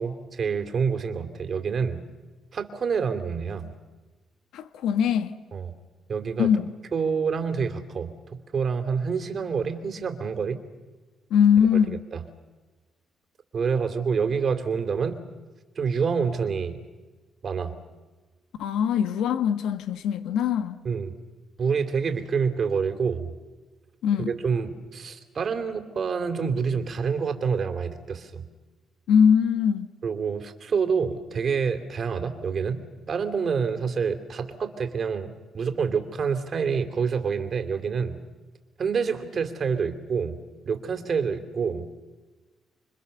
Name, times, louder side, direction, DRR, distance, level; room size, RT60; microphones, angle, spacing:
voice 1, 0.0-2.0 2.5-3.7 5.5-5.7 6.1-6.5 6.9-10.6 12.1-12.2 13.5-15.2 15.7-16.8 17.4-17.7 20.8-21.1 21.6-23.3 24.2-28.4 30.0-38.2 38.8-40.4 40.6-41.9, right 6 dB, 50° right, 3.1 m, -27 dB
voice 2, 4.5-5.3 6.4-6.7 11.3-12.0 18.6-20.8 24.0-24.3 29.1-29.9, left 7 dB, 85° left, 1.4 m, -22 dB
27.5 x 24.5 x 7.0 m
cardioid pair, 90°, 0 cm